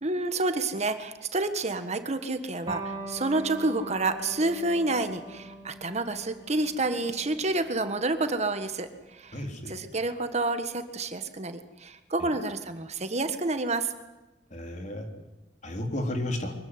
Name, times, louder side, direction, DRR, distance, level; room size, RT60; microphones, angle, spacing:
voice 1, 0.0-13.9, right 2 dB, 40° right, 9 dB, 1.6 m, -29 dB
Electric guitar, 2.7-9.8, right 2 dB, 25° right, 3.0 m, -43 dB
voice 2, 9.3-9.7 12.2-12.3 14.5-15.1 15.6-16.5, left 1 dB, 45° left, 4 dB, 3.6 m, -33 dB
24.0 x 16.0 x 9.7 m, 1.1 s
head